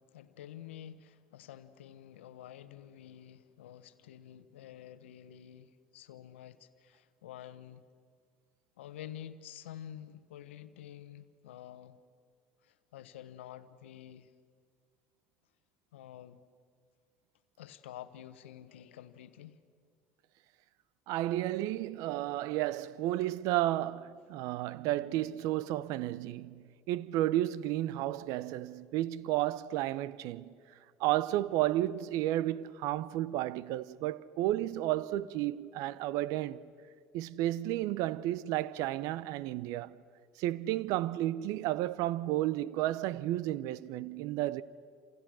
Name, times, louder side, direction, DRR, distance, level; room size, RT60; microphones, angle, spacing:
voice 1, 0.0-7.9 8.8-12.0 12.6-14.3 15.9-16.4 17.6-19.6, left 11 dB, 85° left, 1.0 m, -49 dB
voice 2, 21.1-30.5 31.0-36.6 37.1-40.0 40.4-44.6, right 14 dB, 65° right, 0.7 m, -32 dB
28.5 x 27.5 x 6.3 m
hypercardioid pair, 70°, 6 cm